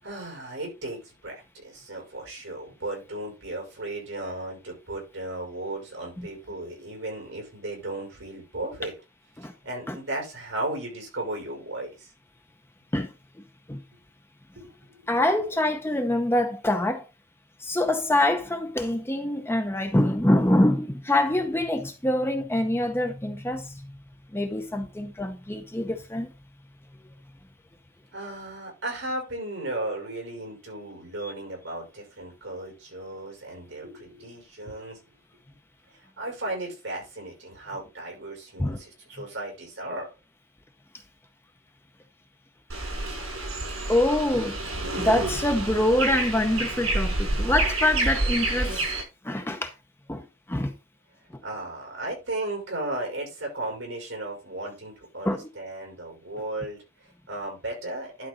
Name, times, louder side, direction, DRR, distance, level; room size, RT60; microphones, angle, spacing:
voice 1, 0.0-8.9 9.4-12.1 14.5-15.1 25.8-25.9 28.1-35.0 35.9-40.1 51.4-58.3, right 2 dB, 60° right, 6.1 m, -35 dB
voice 2, 12.9-13.8 15.1-17.1 17.6-24.0 24.3-26.3 31.2-31.3 38.6-38.8 43.5-43.6 43.9-44.6 44.9-48.9 49.2-49.7 50.1-50.7 51.3-51.4 55.2-55.5, left 1 dB, 10° left, 0.7 m, -25 dB
sound 1, 42.7-49.0, right 2 dB, 80° right, 5.2 m, -28 dB
11.5 x 5.3 x 3.8 m
head